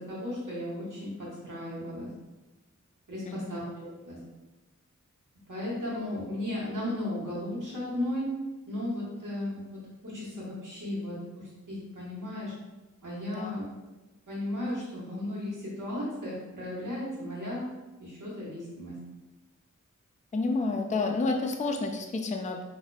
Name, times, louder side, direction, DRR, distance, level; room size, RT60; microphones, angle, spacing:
voice 1, 0.0-2.1 3.1-4.2 5.5-8.3 8.7-9.8 10.0-12.5 13.0-13.6 14.3-17.7 18.0-19.0, left 1 dB, 85° right, -7 dB, 1.3 m, -35 dB
voice 2, 3.3-3.6 13.4-13.5 20.3-22.6, left 3 dB, 25° left, 3 dB, 0.4 m, -30 dB
4.0 x 2.6 x 2.3 m, 1.1 s
wide cardioid pair, 40°, 31 cm